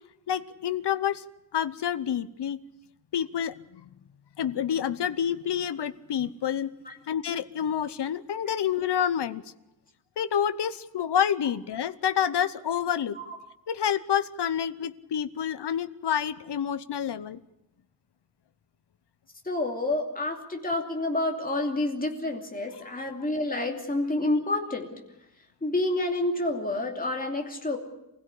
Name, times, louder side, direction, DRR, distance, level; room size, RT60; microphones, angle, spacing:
voice 1, 0.3-1.2 1.5-2.6 3.1-3.8 4.4-6.7 7.1-9.4 10.2-13.2 13.7-17.4 22.9-23.0, left 9 dB, 80° left, 13 dB, 0.9 m, -28 dB
voice 2, 19.4-25.0 25.6-27.8, left 2 dB, 20° left, 2 dB, 2.9 m, -29 dB
25.0 x 16.5 x 8.4 m, 0.90 s
wide cardioid pair, 175°, 40 cm